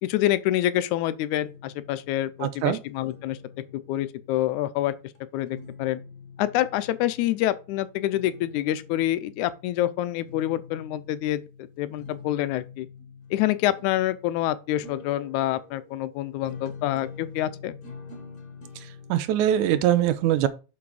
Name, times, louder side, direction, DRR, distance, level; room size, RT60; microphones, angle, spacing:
voice 1, 0.0-3.4 3.7-4.9 5.3-6.0 6.4-11.4 11.8-12.9 13.3-17.8, left 13 dB, 85° left, 2.0 m, -27 dB
sound 1, 1.4-20.0, left 5 dB, 40° left, 1.8 m, -46 dB
voice 2, 2.4-2.8 18.8-20.5, right 11 dB, 85° right, 2.1 m, -23 dB
6.2 x 5.9 x 4.8 m
omnidirectional pair, 3.4 m